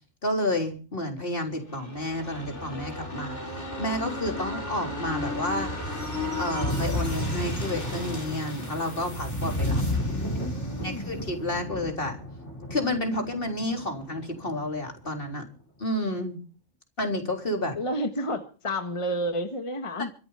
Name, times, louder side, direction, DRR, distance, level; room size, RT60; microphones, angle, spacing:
voice 1, 0.2-5.7 6.4-9.8 10.8-12.2 12.7-15.5 15.8-16.4 17.0-17.8, left 1 dB, 45° left, 3 dB, 4.0 m, -30 dB
sound 1, 1.6-15.1 15.4-15.5, left 1 dB, 65° left, 5.2 m, -32 dB
sound 2, 5.9-12.0, left 1 dB, 5° left, 5.1 m, -46 dB
voice 2, 9.8-11.1 17.7-20.1, equal, 25° left, 7 dB, 1.5 m, -31 dB
25.0 x 8.4 x 5.7 m, 0.37 s
omnidirectional pair, 1.3 m